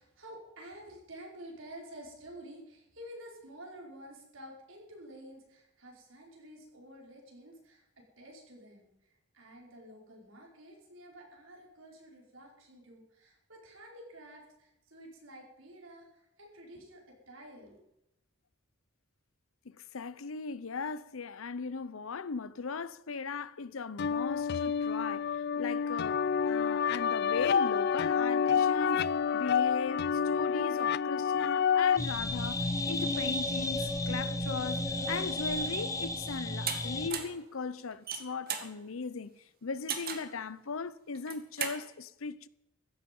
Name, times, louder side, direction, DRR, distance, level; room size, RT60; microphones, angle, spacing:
voice 1, 0.0-17.8, right 1 dB, 70° right, 5.2 m, -50 dB
voice 2, 19.6-29.1 29.3-42.5, left 4 dB, 90° left, 0.7 m, -38 dB
sound 1, 24.0-32.0, left 7 dB, 55° left, 0.4 m, -28 dB
sound 2, 32.0-37.1, left 1 dB, 15° left, 1.3 m, -33 dB
sound 3, 36.7-36.8 37.1-37.4 37.9-38.7 39.9-40.3 41.1-41.8, right 7 dB, 50° right, 1.9 m, -35 dB
16.0 x 13.0 x 5.5 m
head